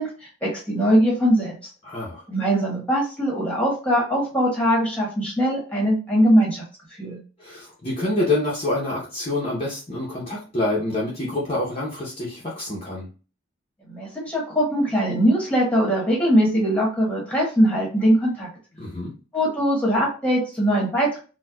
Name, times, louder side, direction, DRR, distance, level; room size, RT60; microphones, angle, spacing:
voice 1, 0.0-1.5 2.3-6.6 7.0-7.2 13.8-18.5 19.3-21.2, equal, 5° left, -3 dB, 1.2 m, -21 dB
voice 2, 1.8-2.2 7.4-13.1 18.8-19.1, left 2 dB, 30° left, -5 dB, 0.7 m, -27 dB
4.3 x 2.2 x 2.2 m, 0.35 s
head